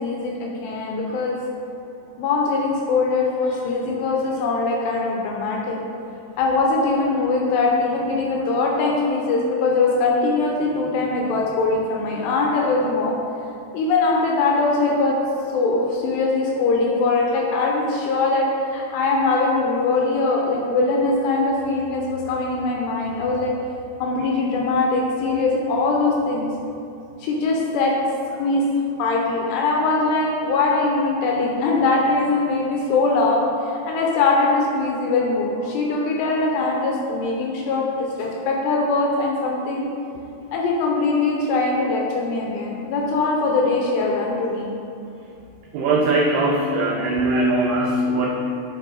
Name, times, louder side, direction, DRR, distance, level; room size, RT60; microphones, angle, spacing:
voice 1, 0.0-1.4 2.2-5.8 6.4-13.2 13.7-15.2 15.5-18.5 18.7-23.5 24.0-26.5 27.2-27.9 28.3-28.6 29.0-33.4 33.7-39.9 40.5-44.7, left 3 dB, 80° left, -1 dB, 2.6 m, -21 dB
voice 2, 45.7-48.3, right 2 dB, 90° right, -1 dB, 2.2 m, -20 dB
9.4 x 5.6 x 3.8 m, 2.6 s
omnidirectional pair, 5.4 m